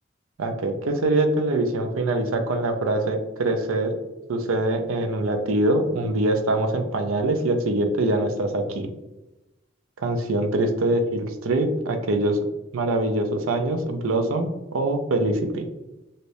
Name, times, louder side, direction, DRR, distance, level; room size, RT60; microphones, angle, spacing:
voice 1, 0.4-4.0 4.3-8.9 10.0-12.4 12.7-15.7, right 2 dB, 85° right, 6 dB, 0.5 m, -24 dB
2.8 x 2.6 x 3.1 m, 1.0 s
head